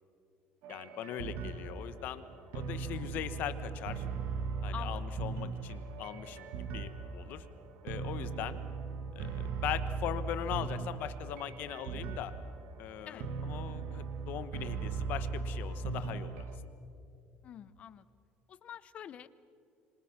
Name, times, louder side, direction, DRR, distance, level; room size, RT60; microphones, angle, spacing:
sound 1, 0.6-16.6, right 4 dB, 65° right, 2.0 m, -38 dB
voice 1, 0.7-2.2 2.5-4.0 4.6-6.5 6.7-7.4 7.8-8.6 9.1-12.3 12.8-16.5, left 11 dB, 55° left, 12 dB, 1.2 m, -40 dB
voice 2, 4.7-5.0 13.1-13.2 17.4-18.0 18.5-19.3, left 9 dB, 35° left, 16 dB, 0.7 m, -46 dB
26.0 x 25.0 x 5.9 m, 2.6 s
cardioid pair, 165°, 4 cm